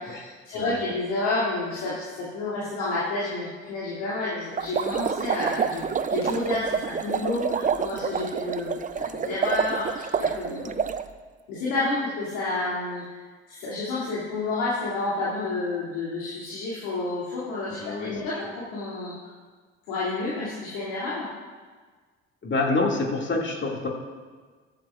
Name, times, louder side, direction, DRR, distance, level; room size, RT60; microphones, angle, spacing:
voice 1, 0.0-10.7 11.5-13.2 13.5-19.1 19.9-21.3, left 2 dB, 75° left, -8 dB, 2.8 m, -30 dB
sound 1, 4.6-11.0, right 6 dB, 25° right, 0.6 m, -28 dB
voice 2, 17.7-18.1 22.4-23.9, left 3 dB, 35° left, 0 dB, 2.3 m, -27 dB
15.0 x 11.5 x 2.5 m, 1.5 s
hypercardioid pair, 55°, 31 cm